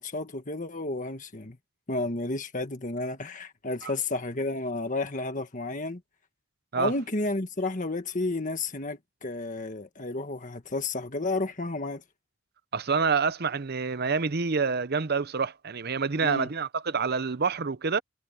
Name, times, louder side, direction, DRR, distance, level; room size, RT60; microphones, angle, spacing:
voice 1, 0.0-1.6 1.9-6.0 6.7-12.0 16.2-16.5, left 2 dB, 35° left, 1.6 m, -32 dB
voice 2, 12.7-18.0, right 5 dB, 50° right, 0.7 m, -27 dB
head